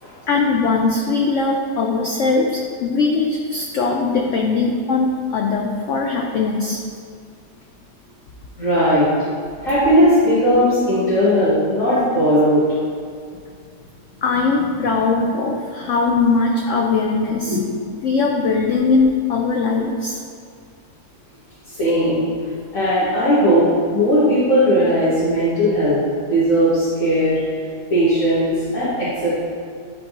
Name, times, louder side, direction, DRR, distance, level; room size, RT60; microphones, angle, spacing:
voice 1, 0.3-6.8 14.2-17.6 18.0-20.2, left 4 dB, 70° left, 1 dB, 0.7 m, -20 dB
voice 2, 8.6-9.1 9.6-12.6 17.5-17.7 21.7-22.2 22.7-26.0 26.3-27.4 27.9-29.4, equal, 55° left, -14 dB, 2.0 m, -17 dB
10.5 x 4.0 x 2.9 m, 2.2 s
omnidirectional pair, 1.8 m